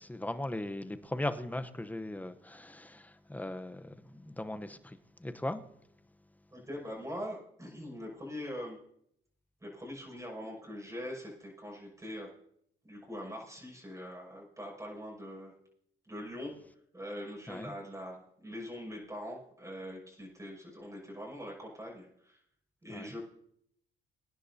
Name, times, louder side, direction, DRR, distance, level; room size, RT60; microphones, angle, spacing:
voice 1, 0.0-5.6 17.5-17.7 22.9-23.2, left 1 dB, 10° left, 0.9 m, -38 dB
voice 2, 6.5-8.8 9.6-12.3 12.8-15.5 16.0-16.5 16.9-22.4 22.8-23.2, equal, 15° right, 6.3 m, -43 dB
23.5 x 10.0 x 2.8 m
cardioid pair, 90°, 20 cm